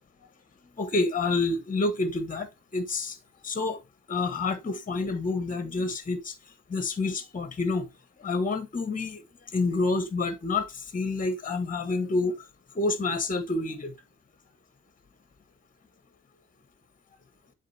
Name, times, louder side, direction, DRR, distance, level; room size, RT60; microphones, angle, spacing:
voice 1, 0.8-3.2 3.4-3.8 4.1-6.3 6.7-7.9 8.2-9.2 9.5-12.4 12.7-13.9, left 3 dB, 25° left, 1.3 m, -28 dB
7.5 x 3.6 x 4.1 m
cardioid pair, 90°, 30 cm